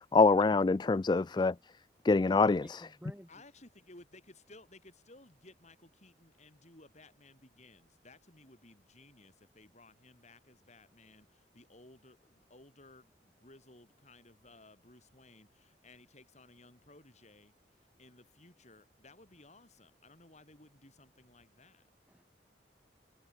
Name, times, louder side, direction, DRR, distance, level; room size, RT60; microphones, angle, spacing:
voice 1, 0.1-1.5 2.0-2.8, left 3 dB, 25° left, 0.3 m, -25 dB
voice 2, 1.3-1.7 2.6-3.4 22.1-22.2, equal, 10° right, 3.6 m, -54 dB
voice 3, 3.3-21.9, left 2 dB, 40° left, 6.8 m, -58 dB
head